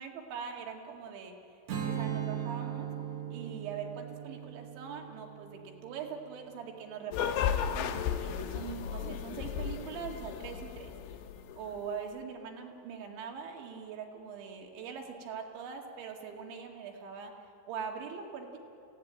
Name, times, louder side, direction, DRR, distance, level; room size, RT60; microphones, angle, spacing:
voice 1, 0.0-1.3 1.9-2.9 3.3-11.0 11.5-17.3 17.7-18.6, right 6 dB, 75° right, 2 dB, 4.3 m, -42 dB
Strum, 1.7-7.0, right 9 dB, 50° right, 2.5 m, -39 dB
sound 1, 7.1-11.8, left 8 dB, 80° left, 2.9 m, -34 dB
28.0 x 17.0 x 8.8 m, 2.8 s
omnidirectional pair, 5.4 m